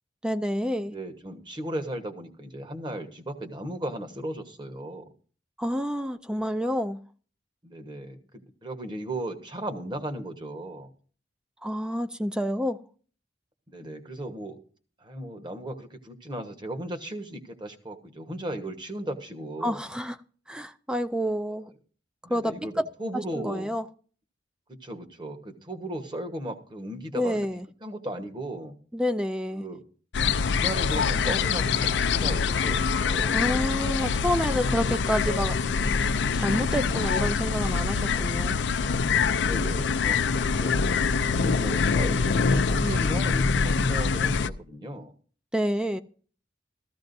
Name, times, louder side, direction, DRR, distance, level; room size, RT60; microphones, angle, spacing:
voice 1, 0.2-0.9 5.6-7.0 11.6-12.8 19.6-20.2 20.5-21.7 22.3-22.9 23.1-23.8 27.1-27.6 28.9-29.6 33.3-35.6 36.3-38.6 45.5-46.0, equal, 5° right, 0.4 m, -28 dB
voice 2, 0.9-5.0 7.6-10.9 13.7-14.6 15.0-19.8 22.2-23.7 24.8-27.5 27.8-28.7 29.5-29.8 30.5-33.5 38.5-39.0 39.4-40.8 41.3-45.1, right 1 dB, 25° right, 1.2 m, -36 dB
sound 1, 30.1-44.5, left 5 dB, 75° left, 0.5 m, -25 dB
14.0 x 14.0 x 2.6 m
head